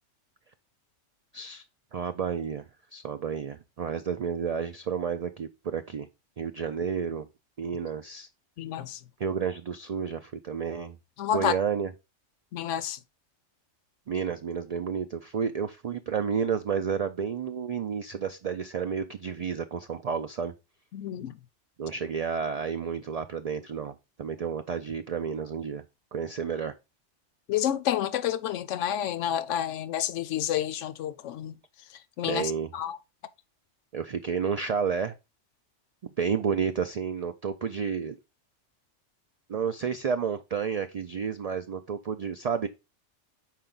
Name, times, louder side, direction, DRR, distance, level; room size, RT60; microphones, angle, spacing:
voice 1, 1.9-2.6 2.9-6.1 6.4-7.3 7.6-8.3 9.2-11.0 11.3-11.9 14.1-20.5 21.8-25.8 26.1-26.7 32.2-32.7 33.9-35.1 36.2-38.2 39.5-42.7, right 6 dB, 85° right, 0.3 m, -31 dB
voice 2, 8.6-9.0 11.2-11.5 12.5-13.0 20.9-21.3 27.5-31.5 32.2-33.0, left 10 dB, 85° left, 0.9 m, -29 dB
5.7 x 4.5 x 3.8 m
omnidirectional pair, 1.2 m